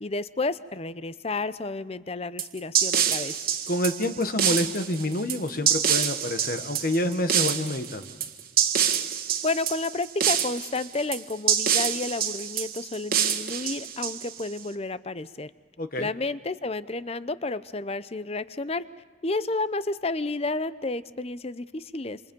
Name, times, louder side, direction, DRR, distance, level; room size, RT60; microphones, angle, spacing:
voice 1, 0.0-3.4 9.4-15.5 16.0-18.8 19.2-22.2, left 3 dB, 30° left, 15 dB, 0.7 m, -31 dB
sound 1, 2.4-14.6, right 9 dB, 50° right, 1.7 m, -26 dB
voice 2, 3.7-8.1 15.8-16.1, left 1 dB, 45° left, 8 dB, 1.3 m, -28 dB
28.5 x 27.0 x 5.4 m, 1.4 s
head